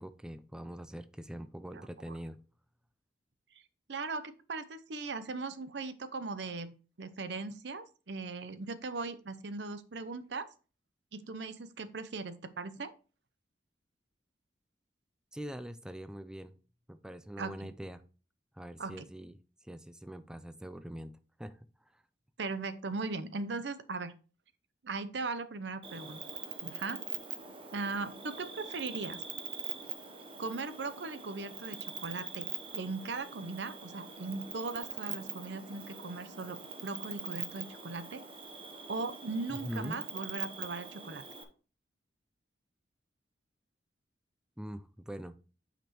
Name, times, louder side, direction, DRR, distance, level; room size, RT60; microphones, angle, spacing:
voice 1, 0.0-2.4 15.3-16.5 16.9-18.0 18.5-19.3 19.6-21.1 21.4-22.0 39.5-40.0 44.6-45.3, equal, 5° right, 10 dB, 0.3 m, -43 dB
voice 2, 3.9-6.7 7.0-10.5 11.1-12.9 17.4-17.7 18.8-19.1 22.4-24.1 24.8-26.2 26.6-27.0 27.7-29.2 30.4-32.5 32.7-38.2 38.9-41.2, right 3 dB, 70° right, 12 dB, 0.7 m, -39 dB
Cricket, 25.8-41.4, right 6 dB, 30° right, 1.0 m, -43 dB
9.0 x 5.2 x 3.0 m, 0.36 s
head